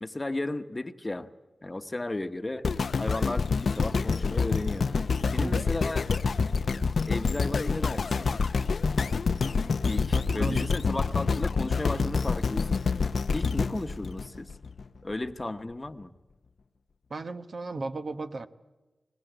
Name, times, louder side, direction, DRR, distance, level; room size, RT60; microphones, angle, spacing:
voice 1, 0.0-1.3 1.6-2.7 3.0-4.9 5.3-6.1 7.1-8.4 9.9-12.9 13.3-14.5 15.0-16.1, left 2 dB, 25° left, 1.1 m, -34 dB
sound 1, 2.6-14.8 15.4-15.5, left 5 dB, 80° left, 0.7 m, -27 dB
voice 2, 10.1-10.7 17.1-18.5, right 3 dB, 65° right, 1.0 m, -35 dB
21.0 x 20.0 x 9.1 m
wide cardioid pair, 90°, 0 cm